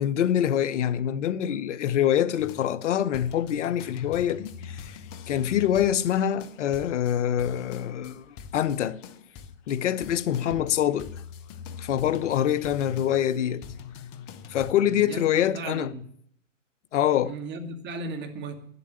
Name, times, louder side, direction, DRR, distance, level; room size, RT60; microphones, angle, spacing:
voice 1, 0.0-5.0 5.3-9.0 9.7-11.1 11.8-13.6 14.5-15.9 16.9-17.3, left 10 dB, 70° left, 1.0 m, -25 dB
sound 1, 2.4-14.7, left 6 dB, 40° left, 1.2 m, -44 dB
voice 2, 14.8-16.1 17.2-18.6, right 3 dB, 30° right, 2.3 m, -36 dB
11.5 x 8.3 x 8.8 m
hypercardioid pair, 115°, 38 cm